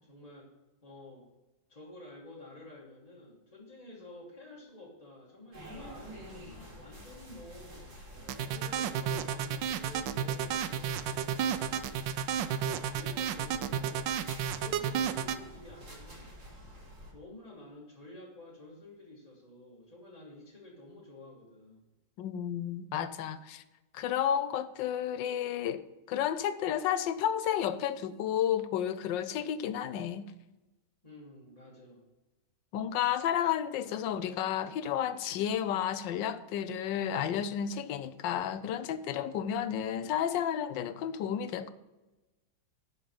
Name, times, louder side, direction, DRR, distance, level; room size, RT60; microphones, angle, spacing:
voice 1, 0.0-0.5 0.8-1.3 1.7-7.9 8.4-11.9 12.5-16.3 17.1-21.9 31.0-32.0, left 1 dB, 20° left, 1.7 m, -51 dB
sound 1, 5.5-17.1, equal, 55° right, 3.4 m, -49 dB
sound 2, 8.3-15.4, right 9 dB, 80° right, 1.3 m, -32 dB
voice 2, 22.2-23.6 23.9-30.3 32.7-41.7, left 9 dB, 75° left, 1.3 m, -32 dB
11.5 x 4.2 x 7.5 m
omnidirectional pair, 2.1 m